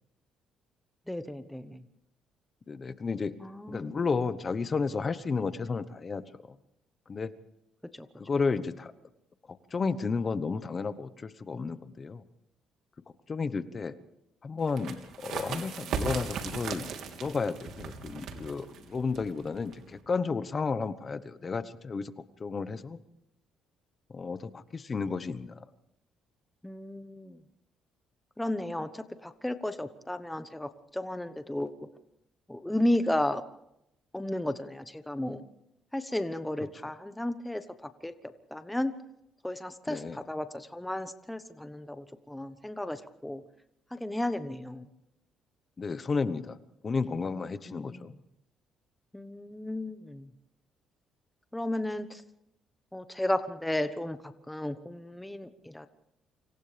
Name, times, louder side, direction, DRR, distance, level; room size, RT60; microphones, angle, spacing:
voice 1, 1.1-1.8 3.4-3.9 7.9-8.1 26.6-27.4 28.4-31.7 32.5-33.4 34.1-35.4 35.9-38.1 38.5-38.9 39.4-43.4 43.9-44.9 47.7-48.2 49.1-50.3 51.5-52.2 52.9-55.9, left 1 dB, 5° left, 10 dB, 1.1 m, -33 dB
voice 2, 2.7-3.4 3.7-6.6 7.1-7.3 8.2-8.9 9.5-12.2 13.3-14.0 14.4-16.9 17.2-22.1 22.4-23.0 24.1-25.6 36.6-36.7 39.9-40.2 45.8-46.6 46.8-48.1, left 4 dB, 30° left, 13 dB, 1.1 m, -32 dB
sound 1, 14.6-20.0, right 5 dB, 70° right, 3.3 m, -38 dB
28.5 x 26.0 x 3.5 m, 0.81 s
cardioid pair, 115°, 0 cm